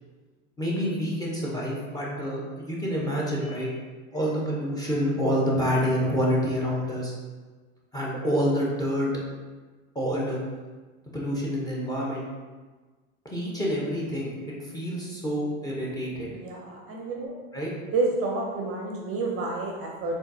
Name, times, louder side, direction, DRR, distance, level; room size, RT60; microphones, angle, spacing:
voice 1, 0.6-3.7 4.1-7.1 7.9-9.1 9.9-10.4 11.1-12.2 13.3-16.3 17.5-17.7, equal, 10° left, -4 dB, 0.6 m, -27 dB
voice 2, 16.3-17.4 17.9-20.2, right 3 dB, 35° right, -1 dB, 0.5 m, -29 dB
3.8 x 2.3 x 2.6 m, 1.3 s
hypercardioid pair, 100°, 42 cm